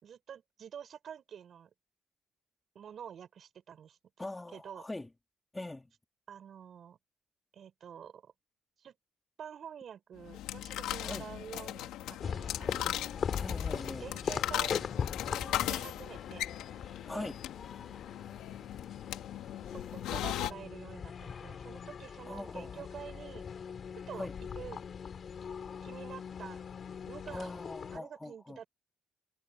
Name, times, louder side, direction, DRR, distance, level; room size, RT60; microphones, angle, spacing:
voice 1, 0.0-1.7 2.7-4.0 4.5-4.8 6.3-7.0 7.5-8.3 8.8-8.9 9.4-13.1 13.7-14.9 15.3-16.5 17.1-17.3 19.7-23.4 24.1-24.3 24.5-24.8 25.8-26.6 27.1-27.5 27.9-28.7, right 8 dB, 60° right, 5.7 m, -47 dB
voice 2, 4.2-5.1 5.5-5.9 11.0-11.2 13.4-14.0 17.1-17.4 22.3-22.8 24.1-24.3 27.3-28.6, left 2 dB, 15° left, 2.1 m, -42 dB
sound 1, 10.2-20.5, left 13 dB, 90° left, 2.2 m, -38 dB
sound 2, 12.2-28.0, left 6 dB, 55° left, 5.0 m, -40 dB
cardioid pair, 75°, 0 cm